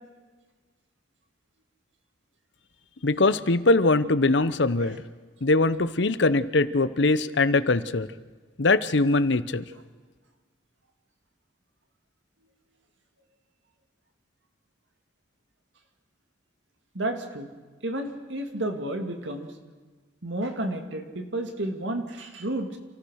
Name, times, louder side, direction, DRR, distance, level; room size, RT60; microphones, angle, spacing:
voice 1, 3.0-5.0 5.4-8.1 8.6-9.6, left 2 dB, 65° left, 14 dB, 0.9 m, -22 dB
voice 2, 16.9-17.5 17.8-19.5 20.2-22.8, right 1 dB, 70° right, 5 dB, 2.4 m, -31 dB
28.0 x 14.5 x 6.5 m, 1.4 s
head